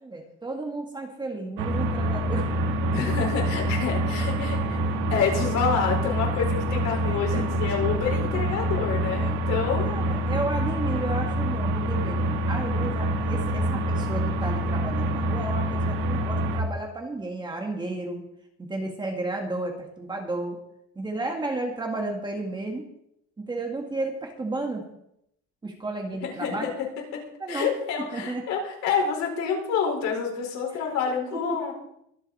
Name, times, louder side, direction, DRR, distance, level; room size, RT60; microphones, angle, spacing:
voice 1, 0.0-2.5 7.0-7.4 9.6-18.2 18.6-20.6 20.9-22.8 23.4-24.8 25.6-26.7 27.4-27.7 28.1-28.4 31.3-31.6, right 2 dB, 15° right, 2 dB, 1.7 m, -33 dB
sound 1, 1.6-16.6, right 1 dB, 75° right, 2.1 m, -26 dB
voice 2, 2.9-4.8 5.1-9.9 26.2-26.7 27.1-27.2 27.5-31.7, left 6 dB, 60° left, 0 dB, 4.7 m, -28 dB
23.5 x 8.0 x 4.2 m, 0.75 s
cardioid pair, 160°, 32 cm